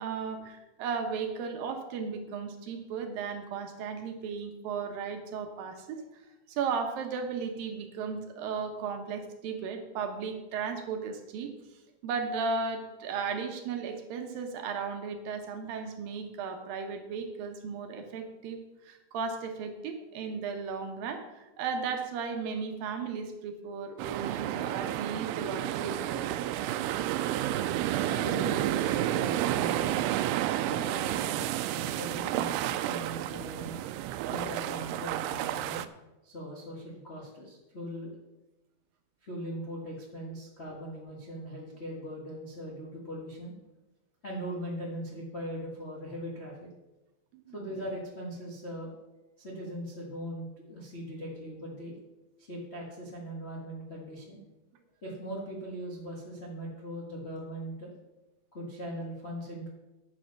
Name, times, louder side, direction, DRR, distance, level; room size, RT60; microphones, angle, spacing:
voice 1, 0.0-6.0 6.5-11.5 12.0-26.3 47.3-47.6, right 5 dB, 70° right, 5 dB, 2.6 m, -35 dB
sound 1, 24.0-35.9, right 13 dB, 90° right, 2.6 m, -31 dB
voice 2, 28.1-30.0 30.6-33.7 34.3-35.8 36.2-38.2 39.2-43.5 44.2-46.7 47.5-48.9 49.4-52.0 52.4-54.4 55.0-57.9 58.5-59.7, equal, 65° left, -3 dB, 0.6 m, -40 dB
10.5 x 7.8 x 5.9 m, 1.0 s
omnidirectional pair, 4.6 m